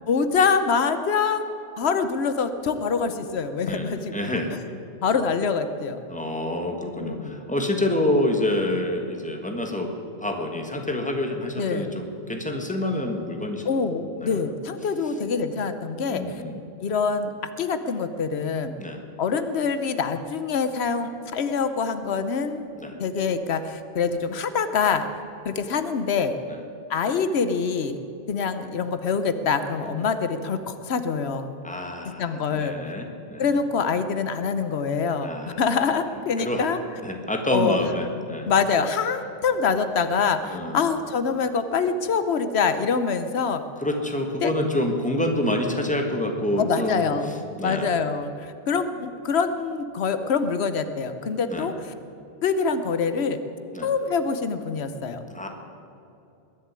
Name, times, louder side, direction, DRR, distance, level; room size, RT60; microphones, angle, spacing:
voice 1, 0.1-1.4 1.8-4.1 5.0-6.0 7.0-7.4 11.6-11.9 13.6-16.2 16.8-17.3 17.6-18.7 19.2-22.7 23.0-25.1 25.4-26.3 26.9-28.0 28.3-31.5 32.2-32.7 33.4-36.8 37.5-37.8 38.5-43.6 44.4-44.5 46.6-51.9 52.4-53.4 53.8-55.2, left 5 dB, 90° left, 10 dB, 1.1 m, -25 dB
voice 2, 3.7-4.5 6.1-9.9 10.2-13.7 14.2-14.4 16.0-16.6 18.8-19.0 22.7-23.0 26.5-26.6 29.8-30.1 31.6-32.3 32.5-33.4 35.2-35.6 36.4-36.7 37.0-38.5 40.4-40.8 43.8-47.9 51.5-51.7 53.7-53.9 55.3-55.5, left 1 dB, 5° left, 3 dB, 1.6 m, -27 dB
21.0 x 7.1 x 9.7 m, 2.7 s
omnidirectional pair, 1.1 m